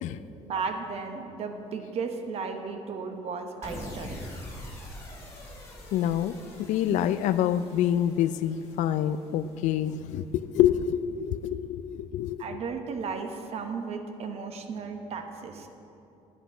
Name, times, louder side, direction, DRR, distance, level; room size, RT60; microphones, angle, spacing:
voice 1, 0.4-4.3 12.4-15.7, right 5 dB, 55° right, 5 dB, 1.0 m, -35 dB
sound 1, 3.6-10.0, left 1 dB, 25° left, 2.5 m, -44 dB
voice 2, 5.9-12.6, left 10 dB, 80° left, 14 dB, 0.4 m, -27 dB
10.5 x 8.0 x 4.9 m, 2.7 s
cardioid pair, 140°, 12 cm